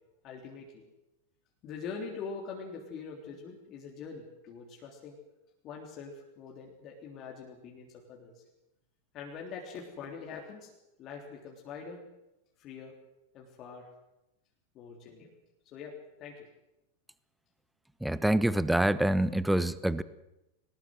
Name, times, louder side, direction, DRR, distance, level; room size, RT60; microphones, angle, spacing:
voice 1, 0.2-0.8 1.6-5.2 5.6-8.4 9.1-10.7 11.0-12.1 12.6-12.9 13.3-13.9 14.7-15.3 15.6-16.5, left 5 dB, 35° left, 0 dB, 3.5 m, -43 dB
voice 2, 18.0-20.0, right 1 dB, 5° right, 17 dB, 0.9 m, -26 dB
22.5 x 19.0 x 7.8 m, 0.92 s
figure-of-eight pair, 90°, 0 cm